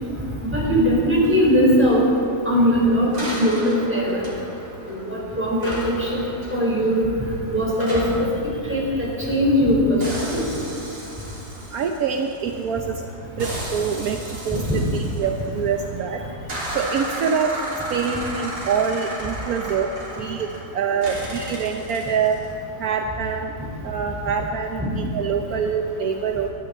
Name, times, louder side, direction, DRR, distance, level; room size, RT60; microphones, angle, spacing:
voice 1, 0.5-2.0 2.5-4.2 4.9-6.2 6.5-7.0 7.5-8.3 8.7-9.8 10.3-10.4 14.5-14.8 24.8-24.9, equal, 5° right, -5 dB, 4.4 m, -20 dB
sound 1, 3.1-5.2 5.6-9.6 10.0-12.8 13.4-15.8 16.5-20.7 21.0-22.5, right 1 dB, 90° right, 4.2 m, -34 dB
voice 2, 11.7-12.9 13.4-14.2 14.4-14.6 14.9-16.2 16.7-17.5 17.9-22.4 22.8-23.5 23.8-26.5, right 6 dB, 70° right, 4 dB, 1.2 m, -25 dB
21.5 x 12.5 x 4.3 m, 2.6 s
omnidirectional pair, 1.7 m